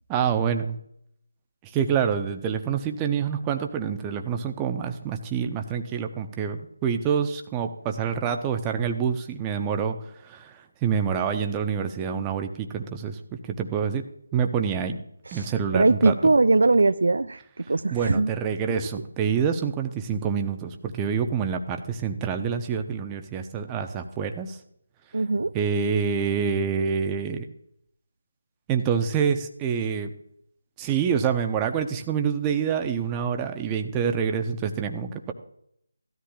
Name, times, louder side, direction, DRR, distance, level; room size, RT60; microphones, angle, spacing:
voice 1, 0.1-0.8 1.6-10.0 10.2-13.2 13.4-14.0 14.3-15.0 15.3-16.1 17.9-24.6 25.5-27.5 28.7-30.1 30.8-35.3, right 7 dB, 15° right, 6 dB, 0.8 m, -27 dB
voice 2, 15.3-17.4 17.7-18.3 25.1-25.5, right 3 dB, 65° right, 14 dB, 0.4 m, -21 dB
16.0 x 13.0 x 2.4 m, 0.71 s
figure-of-eight pair, 160°, 0 cm